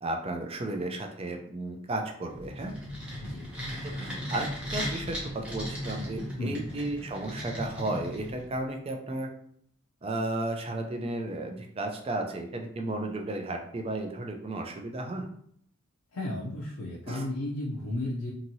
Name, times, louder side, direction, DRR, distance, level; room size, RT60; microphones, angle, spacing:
voice 1, 0.0-2.7 4.0-9.3 10.0-15.2 17.1-17.2, right 2 dB, 25° right, 3 dB, 0.4 m, -34 dB
sound 1, 2.3-8.6, equal, 5° right, 0.8 m, -37 dB
voice 2, 6.4-6.7 16.1-18.3, left 1 dB, 85° left, -5 dB, 0.6 m, -33 dB
2.9 x 2.6 x 2.7 m, 0.67 s
head